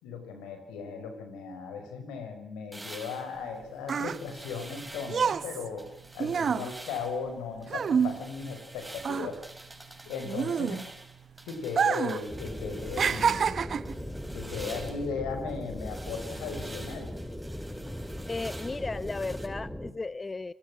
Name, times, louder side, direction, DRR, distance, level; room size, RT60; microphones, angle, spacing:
voice 1, 0.0-5.9 6.1-9.4 10.1-10.8 11.5-13.5 14.3-17.1, left 5 dB, 90° left, 6 dB, 5.1 m, -37 dB
sound 1, 2.7-5.4 5.8-7.2 7.6-13.5 13.8-19.5, right 1 dB, 15° right, 5.5 m, -48 dB
sound 2, 3.4-8.7 9.0-11.1 11.7-12.3 12.5-14.0 14.7-14.9, right 6 dB, 60° right, 1.1 m, -28 dB
sound 3, 12.3-19.9, equal, 5° left, 3.4 m, -39 dB
voice 2, 18.3-20.5, left 3 dB, 35° left, 17 dB, 0.8 m, -35 dB
26.0 x 20.0 x 6.2 m, 0.85 s
supercardioid pair, 45°, 0 cm